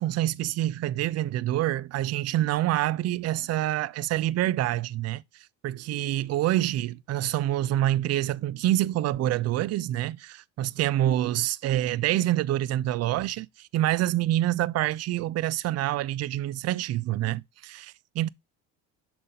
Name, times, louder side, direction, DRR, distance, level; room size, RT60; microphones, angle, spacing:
voice 1, 0.0-5.2 5.6-18.3, right 14 dB, 40° right, 0.4 m, -26 dB
6.8 x 4.0 x 3.7 m
supercardioid pair, 95°, 39 cm